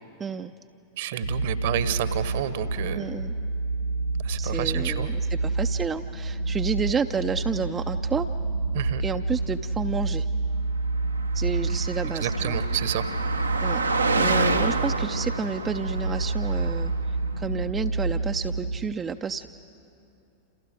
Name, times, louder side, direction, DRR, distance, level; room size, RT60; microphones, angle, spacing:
voice 1, 0.2-0.5 2.9-3.3 4.4-8.3 9.0-10.3 11.3-12.6 13.6-13.8 14.2-16.9 17.4-19.5, right 6 dB, 20° right, 6 dB, 0.6 m, -30 dB
voice 2, 1.0-3.0 4.2-5.1 8.7-9.0 12.2-13.1, right 11 dB, 55° right, 13 dB, 1.2 m, -30 dB
sound 1, 1.2-19.0, right 3 dB, 85° left, 0.8 m, -29 dB
Car passing by, 11.1-17.1, right 3 dB, 80° right, 1.0 m, -28 dB
28.5 x 28.0 x 5.2 m, 2.6 s
figure-of-eight pair, 90°, 0 cm